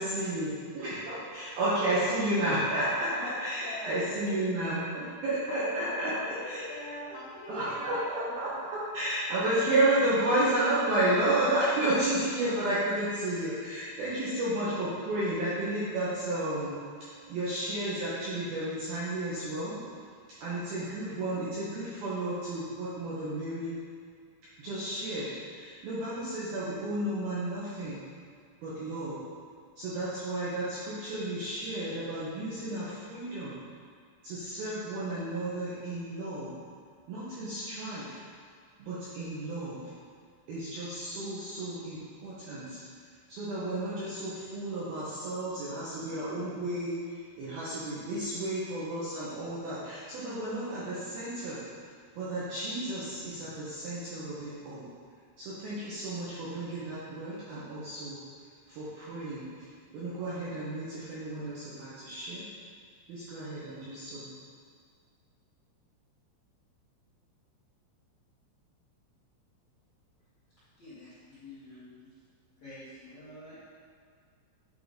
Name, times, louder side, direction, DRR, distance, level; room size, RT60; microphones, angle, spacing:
voice 1, 0.0-6.1 6.4-6.6 7.5-19.8 20.4-23.8 24.6-28.0 28.6-29.2 29.8-33.6 34.2-36.5 37.1-38.2 38.8-39.9 40.5-51.6 52.2-54.9 55.4-58.2 58.7-62.5 63.1-64.3, right 1 dB, 75° right, -10 dB, 2.2 m, -32 dB
voice 2, 3.2-4.4 5.5-8.0 8.3-8.4, left 2 dB, 70° left, -4 dB, 3.1 m, -41 dB
voice 3, 70.8-72.1 72.6-73.7, left 1 dB, 90° left, -14 dB, 1.4 m, -49 dB
8.7 x 3.7 x 5.1 m, 2.1 s
omnidirectional pair, 6.0 m